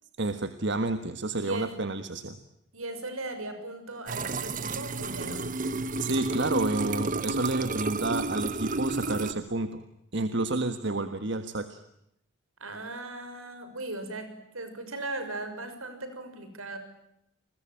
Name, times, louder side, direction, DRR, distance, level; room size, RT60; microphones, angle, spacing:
voice 1, 0.2-2.4 6.0-9.8 10.1-11.8, right 2 dB, 55° right, 10 dB, 1.5 m, -30 dB
voice 2, 1.4-1.7 2.7-5.5 12.6-16.8, right 2 dB, 75° right, 9 dB, 6.3 m, -38 dB
sound 1, 4.1-9.3, right 3 dB, 35° right, 1.2 m, -31 dB
29.5 x 22.0 x 9.0 m, 0.80 s
head